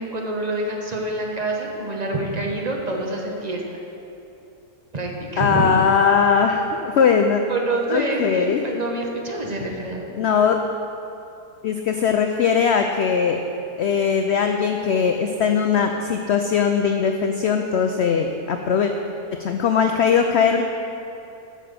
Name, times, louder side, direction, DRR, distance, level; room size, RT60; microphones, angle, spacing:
voice 1, 0.0-3.8 4.9-5.7 7.5-10.1, right 2 dB, 30° right, 0 dB, 1.0 m, -26 dB
voice 2, 5.4-7.4 7.9-8.6 10.2-10.6 11.6-13.4 13.8-18.9 19.4-20.6, left 6 dB, 80° left, 5 dB, 0.6 m, -20 dB
8.6 x 6.3 x 6.7 m, 2.8 s
omnidirectional pair, 1.7 m